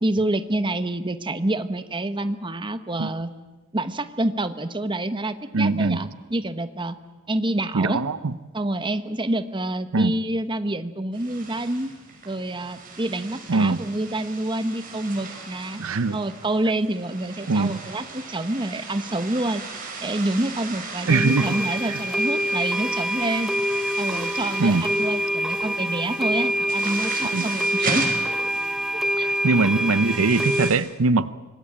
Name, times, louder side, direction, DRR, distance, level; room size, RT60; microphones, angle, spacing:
voice 1, 0.0-3.3 3.7-7.0 7.3-8.0 8.5-11.9 12.2-15.8 16.1-19.6 20.0-23.5 24.0-28.1 29.2-29.3, right 1 dB, 25° right, 10 dB, 1.1 m, -27 dB
voice 2, 5.5-6.0 7.7-8.3 9.9-10.1 13.5-13.8 15.8-16.2 17.5-17.8 21.1-21.5 21.8-22.0 24.6-24.8 27.3-27.5 29.4-31.3, right 3 dB, 85° right, 15 dB, 0.7 m, -21 dB
sound 1, 11.1-30.8, right 3 dB, 45° right, 5.9 m, -37 dB
sound 2, 21.1-30.7, equal, ahead, 0.8 m, -25 dB
26.0 x 20.0 x 8.7 m, 1.2 s
head